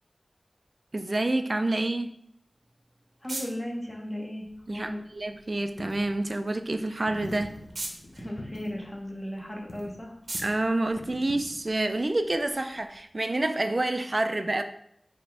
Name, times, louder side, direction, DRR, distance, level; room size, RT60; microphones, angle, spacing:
voice 1, 0.9-2.1 4.7-7.5 10.4-14.6, right 2 dB, 45° right, 8 dB, 0.4 m, -28 dB
sound 1, 2.5-11.9, right 2 dB, 75° right, 0.7 m, -44 dB
voice 2, 3.2-5.0 8.1-10.1, equal, 20° left, -1 dB, 1.1 m, -36 dB
Coin (dropping), 4.4-13.0, left 1 dB, 65° left, 0.7 m, -46 dB
4.1 x 3.3 x 3.3 m, 0.72 s
wide cardioid pair, 70°, 0 cm